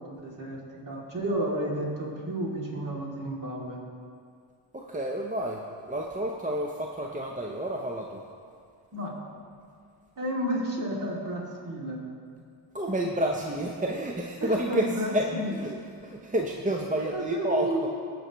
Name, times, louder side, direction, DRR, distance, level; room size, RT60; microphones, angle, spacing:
voice 1, 0.0-3.8 8.9-9.1 10.2-12.0 14.4-15.5 17.1-17.9, right 1 dB, 40° right, -3 dB, 2.6 m, -32 dB
voice 2, 4.7-8.2 12.7-15.8 16.0-17.9, right 1 dB, 15° right, 0 dB, 0.7 m, -30 dB
17.0 x 6.1 x 3.1 m, 2.2 s
cardioid pair, 65°, 49 cm